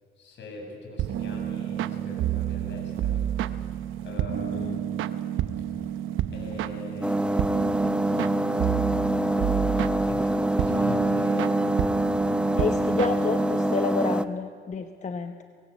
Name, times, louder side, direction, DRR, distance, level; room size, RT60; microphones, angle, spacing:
voice 1, 0.2-3.5 4.0-4.7 6.3-8.1 9.5-11.5 12.0-12.7, left 3 dB, 65° left, 1 dB, 7.6 m, -42 dB
sound 1, 1.0-13.8, right 11 dB, 85° right, 0.9 m, -30 dB
voice 2, 4.5-4.8 12.6-15.4, left 5 dB, 35° left, 7 dB, 1.2 m, -30 dB
sound 2, 7.0-14.2, right 1 dB, 5° right, 0.8 m, -25 dB
24.0 x 20.5 x 8.2 m, 2.1 s
cardioid pair, 90°, 20 cm